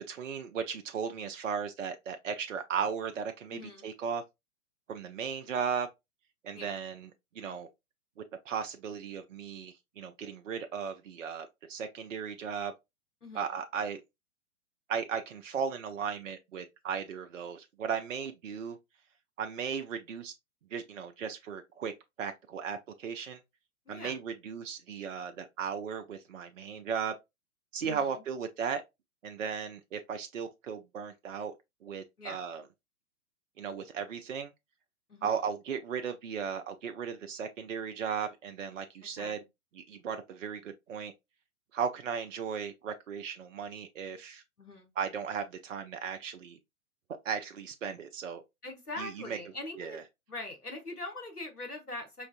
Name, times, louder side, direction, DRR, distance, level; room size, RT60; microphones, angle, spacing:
voice 1, 0.1-4.2 4.9-5.9 6.4-7.1 7.4-7.7 8.5-12.7 13.3-14.0 14.9-18.8 19.4-20.3 20.7-21.9 22.2-23.4 23.9-27.1 27.7-28.8 29.2-31.5 31.8-32.6 33.6-34.5 35.2-39.4 39.8-41.1 41.7-44.4 45.0-46.6 47.2-48.4 49.0-49.4 49.8-50.0, right 7 dB, 60° right, 0.5 m, -36 dB
voice 2, 3.5-3.9 6.5-6.8 13.2-13.5 23.9-24.2 27.8-28.2 32.2-32.4 35.1-35.4 39.2-39.4 44.6-44.9 48.6-50.0 50.3-52.3, left 2 dB, 90° left, 1.4 m, -42 dB
5.0 x 2.5 x 2.4 m
figure-of-eight pair, 115°, 44 cm